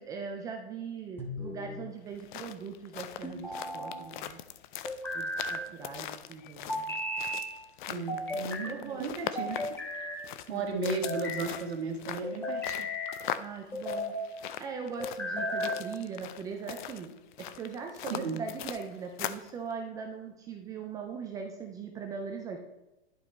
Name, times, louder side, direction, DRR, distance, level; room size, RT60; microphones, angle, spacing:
voice 1, 0.0-4.4 5.1-7.0 8.1-9.5 10.5-10.7 13.4-14.1 14.6-17.1 17.6-22.6, right 6 dB, 10° right, 3 dB, 0.3 m, -40 dB
sound 1, 1.2-1.9 3.2-4.0 4.8-5.6 6.7-7.5 8.1-8.7 9.4-10.2 10.9-11.5 12.2-13.2 13.7-14.2 15.0-15.8, left 1 dB, 5° left, 1.2 m, -35 dB
sound 2, 2.1-19.5, left 11 dB, 50° left, 0.5 m, -41 dB
voice 2, 7.9-9.8 10.5-12.9 18.1-18.4, right 4 dB, 75° right, 2 dB, 1.8 m, -35 dB
11.0 x 4.8 x 3.3 m, 1.0 s
hypercardioid pair, 130°, 32 cm